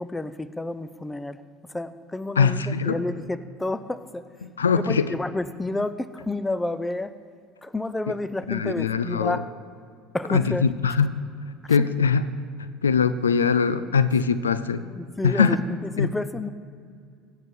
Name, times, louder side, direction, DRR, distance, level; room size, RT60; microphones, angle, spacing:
voice 1, 0.0-1.4 1.7-4.3 4.7-7.1 7.6-9.5 10.1-10.7 11.6-11.9 14.9-16.5, left 2 dB, 10° left, 13 dB, 0.6 m, -30 dB
voice 2, 2.4-3.0 4.6-5.1 8.5-9.4 10.3-11.2 11.7-12.3 12.8-14.8 15.2-15.6 16.0-16.1, left 6 dB, 90° left, 14 dB, 0.4 m, -22 dB
17.0 x 6.8 x 6.0 m, 2.2 s
hypercardioid pair, 70°, 0 cm